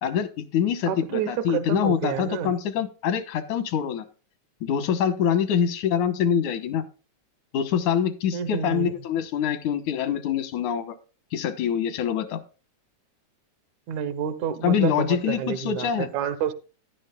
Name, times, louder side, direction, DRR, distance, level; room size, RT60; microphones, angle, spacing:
voice 1, 0.0-4.0 4.6-6.8 7.5-11.0 11.3-12.4 14.6-16.1, left 8 dB, 85° left, 2.6 m, -25 dB
voice 2, 0.9-2.5 8.3-8.9 13.9-16.5, right 8 dB, 80° right, 2.3 m, -29 dB
13.5 x 10.5 x 2.3 m
omnidirectional pair, 3.4 m